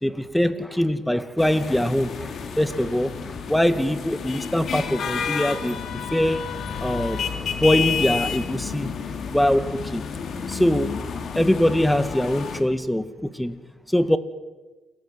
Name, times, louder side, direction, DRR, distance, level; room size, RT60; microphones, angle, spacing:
voice 1, 0.0-5.8 6.1-6.5 6.8-7.2 7.6-8.9 9.3-10.0 10.5-10.9 11.4-13.6 13.9-14.2, left 1 dB, 5° left, 13 dB, 2.0 m, -23 dB
sound 1, 1.4-12.6, left 6 dB, 60° left, 3.2 m, -30 dB
29.0 x 18.5 x 9.6 m, 1.3 s
cardioid pair, 90°, 0 cm